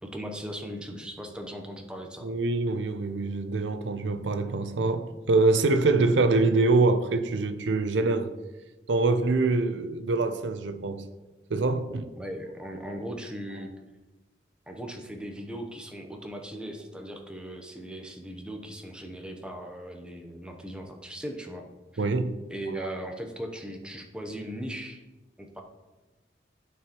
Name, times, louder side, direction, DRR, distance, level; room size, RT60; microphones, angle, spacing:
voice 1, 0.0-2.3 12.2-13.7 14.7-21.7 21.9-22.0 22.5-25.0 25.4-25.6, right 1 dB, 5° right, 0.7 m, -38 dB
voice 2, 2.2-8.3 8.9-11.1 11.5-12.1 22.0-22.4 22.8-22.9, right 3 dB, 90° right, 0.6 m, -25 dB
11.5 x 4.6 x 3.0 m
head